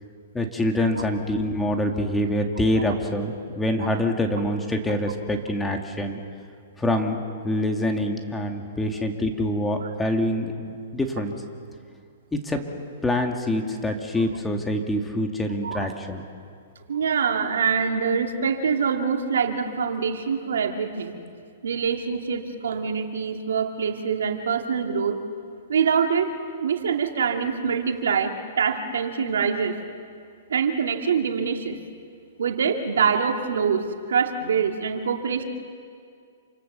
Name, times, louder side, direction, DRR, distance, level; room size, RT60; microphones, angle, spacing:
voice 1, 0.3-6.2 6.8-7.2 7.4-11.3 12.3-12.6 13.0-16.2, left 1 dB, 10° left, 3 dB, 2.4 m, -25 dB
voice 2, 16.9-21.2 21.6-25.2 25.7-26.3 26.6-29.8 30.5-31.8 32.4-35.4, right 6 dB, 80° right, 4 dB, 2.4 m, -25 dB
28.0 x 26.0 x 7.0 m, 2.2 s
hypercardioid pair, 130°, 0 cm